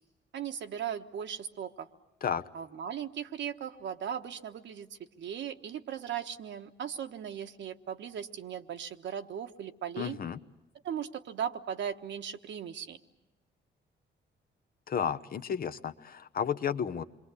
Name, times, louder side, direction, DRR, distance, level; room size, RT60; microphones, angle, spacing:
voice 1, 0.3-1.9 2.5-4.9 5.2-10.2 10.8-13.0, right 8 dB, 70° right, 7 dB, 1.4 m, -38 dB
voice 2, 10.0-10.4 14.9-17.0, left 7 dB, 50° left, 11 dB, 1.0 m, -32 dB
27.0 x 23.0 x 8.4 m, 1.0 s
cardioid pair, 95°, 19 cm